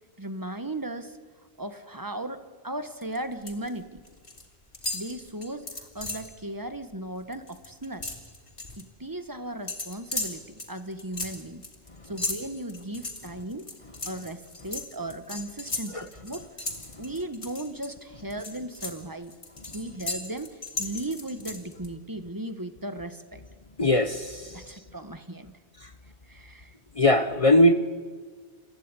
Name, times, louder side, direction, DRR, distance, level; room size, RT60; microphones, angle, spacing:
voice 1, 0.2-1.2 1.6-4.0 4.9-8.1 8.8-11.6 12.0-13.7 14.0-16.4 17.0-19.3 19.7-23.4 24.5-25.5 26.3-26.7, right 1 dB, 20° right, 10 dB, 1.3 m, -36 dB
sound 1, 3.0-3.7 4.0-4.4 4.7-6.3 6.7-6.9 7.2-8.8 9.7-17.9 18.3-21.9, left 2 dB, 55° left, 3.2 m, -36 dB
voice 2, 23.8-24.4 27.0-27.7, left 1 dB, 35° left, 11 dB, 0.9 m, -19 dB
28.5 x 15.0 x 9.8 m, 1.5 s
omnidirectional pair, 1.1 m